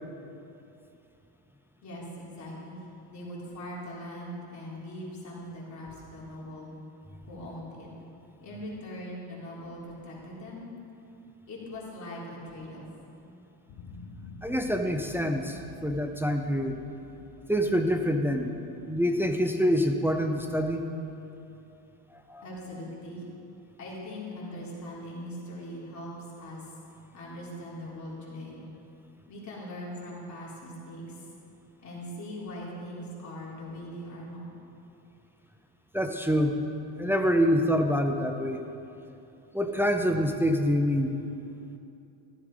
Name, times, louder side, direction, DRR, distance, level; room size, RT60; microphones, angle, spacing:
voice 1, 1.8-2.8 3.1-6.7 7.2-7.9 8.4-10.7 11.5-12.8 22.4-23.2 23.8-26.1 26.4-26.7 27.1-28.6 29.3-31.2 31.8-34.5, equal, 40° left, -6 dB, 3.9 m, -41 dB
sound 1, 13.7-20.8, left 3 dB, 75° left, 2.0 m, -49 dB
voice 2, 14.4-16.8 17.5-18.5 18.9-20.8 22.3-22.4 35.9-36.6 37.0-38.7 39.5-41.1, equal, 5° right, 4 dB, 0.6 m, -26 dB
14.0 x 11.5 x 5.1 m, 2.8 s
cardioid pair, 135°, 45 cm